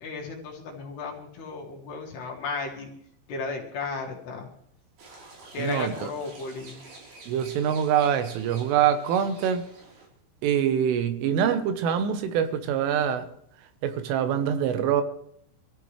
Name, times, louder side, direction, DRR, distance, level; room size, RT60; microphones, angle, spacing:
voice 1, 0.0-2.9 3.3-4.5 5.5-6.8, left 4 dB, 65° left, -1 dB, 3.7 m, -34 dB
sound 1, 5.0-10.1, right 2 dB, 70° right, 6.2 m, -48 dB
voice 2, 5.6-6.1 7.3-9.6 10.4-13.3 13.8-15.0, right 9 dB, 85° right, 9 dB, 3.6 m, -24 dB
25.0 x 14.0 x 3.2 m, 0.71 s
omnidirectional pair, 5.5 m